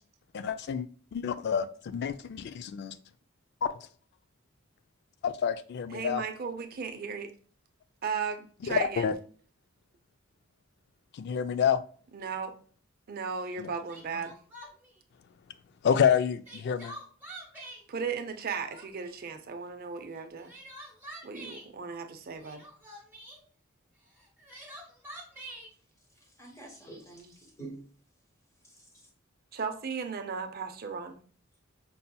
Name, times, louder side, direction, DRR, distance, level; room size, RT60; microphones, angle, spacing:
voice 1, 0.3-2.9 3.6-3.7 5.2-6.2 8.6-9.1 11.2-11.8 13.6-13.7 15.8-16.9, left 7 dB, 55° left, 13 dB, 0.3 m, -28 dB
voice 2, 5.9-7.3 8.0-9.1 12.1-12.5 13.1-14.4 17.9-20.5 21.2-22.6 29.5-31.2, right 5 dB, 50° right, 7 dB, 0.5 m, -36 dB
Crying sobbing, 13.5-13.6 13.9-14.9 16.2-17.8 18.3-19.1 20.2-21.7 22.4-23.4 24.2-25.7, right 1 dB, 10° right, 1.0 m, -46 dB
voice 3, 26.2-27.9 28.6-29.1, right 2 dB, 15° left, 1 dB, 1.0 m, -47 dB
5.4 x 2.7 x 2.2 m, 0.43 s
head